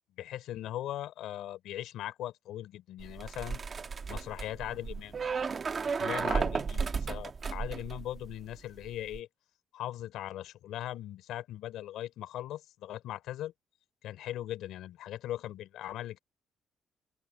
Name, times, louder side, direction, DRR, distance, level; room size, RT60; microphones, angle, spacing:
voice 1, 0.2-3.6 4.1-5.2 5.9-9.3 9.7-13.5 14.0-16.2, left 13 dB, 85° left, 3.4 m, -39 dB
sound 1, 3.0-8.5 8.8-9.2, right 5 dB, 40° right, 1.4 m, -34 dB
open air
cardioid pair, 90°, 0 cm